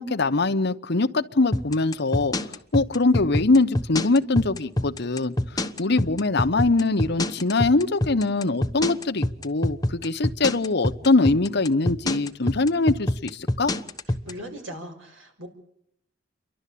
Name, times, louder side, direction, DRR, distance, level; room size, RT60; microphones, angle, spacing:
voice 1, 0.0-13.7, left 3 dB, 60° left, 8 dB, 1.0 m, -23 dB
sound 1, 1.5-14.3, left 1 dB, 20° left, 1.1 m, -25 dB
voice 2, 14.2-15.5, equal, 90° right, 4 dB, 6.1 m, -38 dB
30.0 x 12.0 x 8.5 m, 0.75 s
head